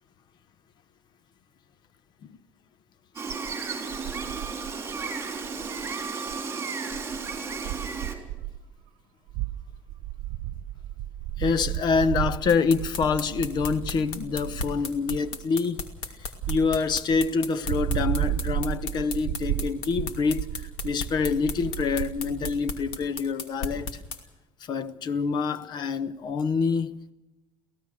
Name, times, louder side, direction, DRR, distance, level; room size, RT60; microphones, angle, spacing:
Gull seagull, 3.2-8.2, right 4 dB, 25° right, 3.9 m, -33 dB
sound 1, 3.3-3.5 3.9-6.0 6.3-6.4 6.9-8.7 9.3-14.8 15.1-15.4 16.4-17.3 17.6-22.6, right 14 dB, 85° right, 0.9 m, -33 dB
voice 1, 11.4-15.8 16.2-24.0 24.6-27.1, left 5 dB, 50° left, 1.0 m, -26 dB
sound 2, 12.5-24.2, left 5 dB, 70° left, 2.6 m, -35 dB
24.5 x 17.0 x 6.5 m
cardioid pair, 125°, 10 cm